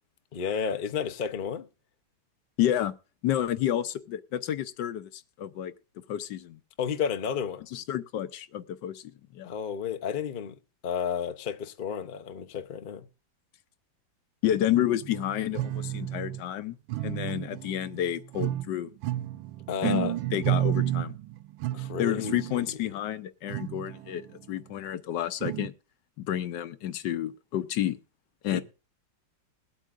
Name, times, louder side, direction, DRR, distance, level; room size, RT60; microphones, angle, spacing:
voice 1, 0.3-1.6 6.8-7.7 9.4-10.6 10.8-13.1 19.7-20.2 21.7-22.6 28.5-28.6, left 7 dB, 50° left, 0.6 m, -32 dB
voice 2, 2.6-2.9 3.2-5.7 6.1-6.6 7.7-9.6 14.4-16.8 17.0-18.9 19.8-21.1 22.0-25.7 26.2-28.0 28.4-28.6, left 11 dB, 70° left, 1.3 m, -30 dB
sound 1, 15.0-16.4 16.9-18.7 19.0-22.7 23.5-24.2 25.4-25.7, right 13 dB, 90° right, 1.4 m, -31 dB
21.5 x 8.3 x 2.5 m
omnidirectional pair, 2.1 m